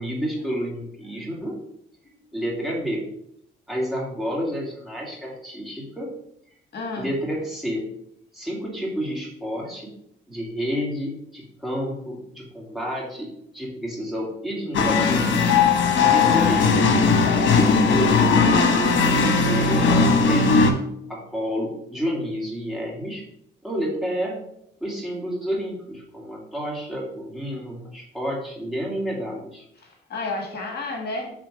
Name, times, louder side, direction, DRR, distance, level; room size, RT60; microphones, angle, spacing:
voice 1, 0.0-1.6 2.3-3.1 3.7-6.1 7.0-7.8 8.3-9.9 10.3-13.3 13.5-15.4 16.1-16.7 17.4-18.9 19.3-20.7 21.1-23.2 23.6-24.4 24.8-29.6, equal, ahead, -3 dB, 2.3 m, -30 dB
voice 2, 6.7-7.1 16.0-16.3 29.8-31.3, left 2 dB, 55° left, 2 dB, 1.5 m, -32 dB
sound 1, 14.7-20.7, left 4 dB, 70° left, 1.0 m, -18 dB
6.6 x 3.8 x 4.9 m, 0.75 s
cardioid pair, 90°, 20 cm